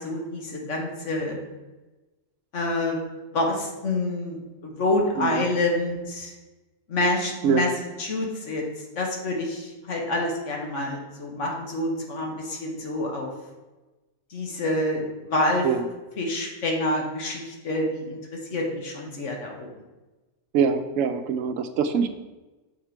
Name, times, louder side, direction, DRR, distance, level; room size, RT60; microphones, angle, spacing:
voice 1, 0.0-1.4 2.5-3.0 3.3-6.3 6.9-7.7 8.0-8.7 8.9-13.3 14.3-15.7 16.2-19.7, left 2 dB, 65° left, 0 dB, 1.6 m, -27 dB
voice 2, 20.5-22.1, right 6 dB, 80° right, 7 dB, 1.0 m, -23 dB
6.5 x 4.6 x 5.0 m, 1.1 s
omnidirectional pair, 1.3 m